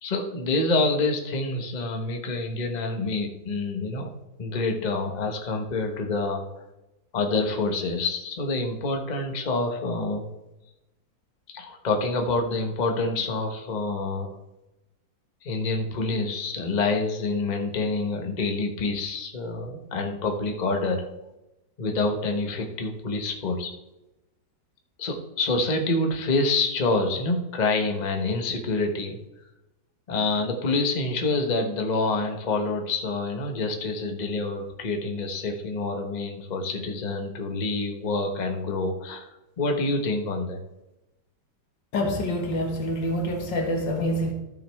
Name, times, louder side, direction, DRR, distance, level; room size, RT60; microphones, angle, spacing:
voice 1, 0.0-4.1 4.4-6.4 7.1-10.3 11.5-14.3 15.4-21.1 21.8-23.7 25.0-29.2 30.1-39.3 39.6-40.6, left 3 dB, 30° left, 1.0 m, -27 dB
voice 2, 41.9-44.3, left 1 dB, 90° left, 2.3 m, -26 dB
13.5 x 6.2 x 3.4 m
omnidirectional pair, 1.9 m